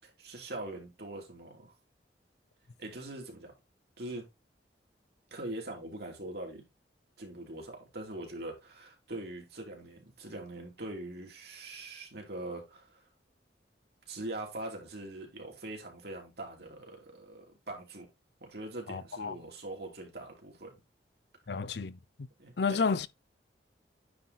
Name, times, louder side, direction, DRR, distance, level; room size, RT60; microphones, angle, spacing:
voice 1, 0.0-1.7 2.8-3.5 4.0-4.3 5.3-6.6 7.2-13.0 14.1-18.1 18.4-20.8 22.4-22.9, right 2 dB, 65° right, 3.0 m, -42 dB
voice 2, 18.9-19.4 21.5-22.0 22.6-23.1, left 5 dB, 65° left, 0.6 m, -31 dB
9.3 x 4.1 x 4.0 m
head